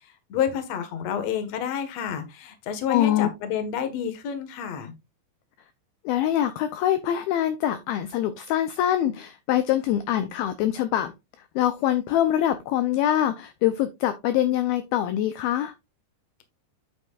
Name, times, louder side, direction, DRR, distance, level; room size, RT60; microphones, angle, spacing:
voice 1, 0.3-4.9, left 8 dB, 55° left, 2.0 m, -29 dB
voice 2, 2.9-3.3 6.0-11.1 11.6-15.7, left 11 dB, 80° left, 2.3 m, -24 dB
9.0 x 8.2 x 2.4 m
omnidirectional pair, 4.9 m